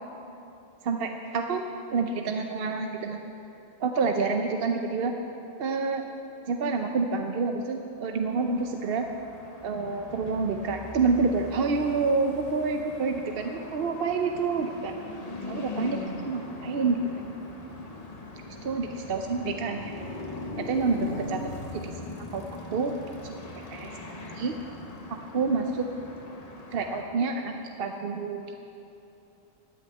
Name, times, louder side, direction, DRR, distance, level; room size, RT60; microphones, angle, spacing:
voice 1, 0.8-1.6 1.9-3.2 3.8-5.1 5.6-6.1 6.5-9.0 9.6-14.9 15.5-16.0 16.3-17.0 18.5-20.0 20.7-21.4 21.7-22.9 23.2-23.3 23.7-23.9 24.4-24.5 25.3-25.9 26.7-28.4, right 4 dB, 60° right, 4 dB, 0.8 m, -28 dB
sound 1, 8.2-27.0, left 2 dB, 35° left, 1.1 m, -41 dB
14.5 x 6.4 x 9.4 m, 2.9 s
omnidirectional pair, 1.2 m